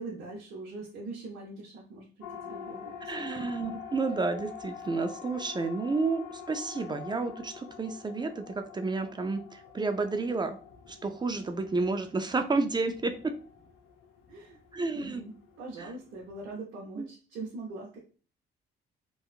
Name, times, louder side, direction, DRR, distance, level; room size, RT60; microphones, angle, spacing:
voice 1, 0.0-3.5 14.3-14.6 14.9-18.0, right 3 dB, 80° right, -4 dB, 0.7 m, -42 dB
Siren, 2.2-16.5, left 7 dB, 90° left, 0.6 m, -46 dB
voice 2, 3.1-10.6 10.9-13.3 14.7-15.2 15.8-15.9 17.0-17.1, right 3 dB, 20° right, 7 dB, 0.3 m, -31 dB
2.8 x 2.3 x 2.4 m, 0.38 s
cardioid pair, 90°, 20 cm